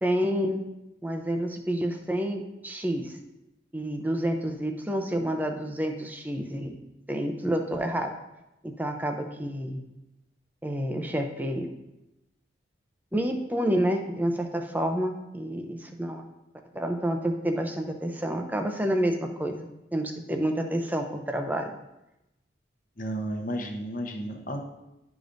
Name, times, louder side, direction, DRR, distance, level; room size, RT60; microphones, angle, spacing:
voice 1, 0.0-0.6 1.0-3.2 3.7-6.7 7.1-8.1 8.6-9.8 10.6-11.7 13.1-16.2 16.7-19.7 19.9-21.7, equal, 10° right, 4 dB, 0.5 m, -29 dB
voice 2, 23.0-24.6, right 1 dB, 45° left, 3 dB, 0.8 m, -32 dB
11.0 x 5.0 x 2.6 m, 0.94 s
head